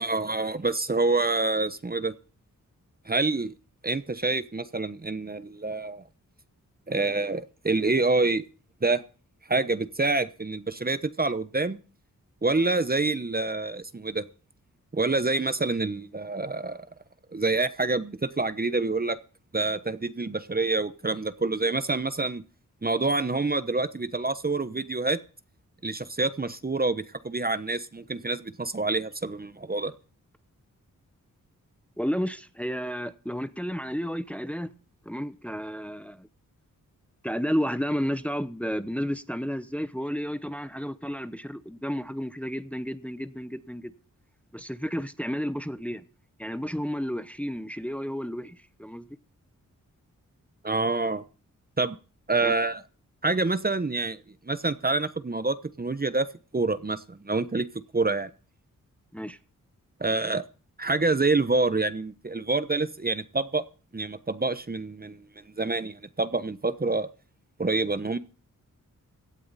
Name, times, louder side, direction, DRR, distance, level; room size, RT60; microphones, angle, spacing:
voice 1, 0.0-2.1 3.1-3.5 3.8-6.0 6.9-8.4 8.8-9.0 9.5-11.8 12.4-14.2 14.9-16.8 17.3-19.2 19.5-22.4 22.8-25.2 25.8-29.9 50.6-51.2 51.8-52.0 52.3-52.8 53.2-54.2 54.5-56.3 56.5-57.7 57.9-58.3 60.0-60.4 60.8-63.6 63.9-65.2 65.6-67.1 67.6-68.2, right 3 dB, 30° right, 1.0 m, -27 dB
voice 2, 32.0-34.7 35.0-36.3 37.2-43.9 44.5-46.0 46.4-49.1 52.4-52.5 59.1-59.4, equal, 5° left, 1.0 m, -32 dB
17.5 x 12.0 x 4.2 m
cardioid pair, 60°, 33 cm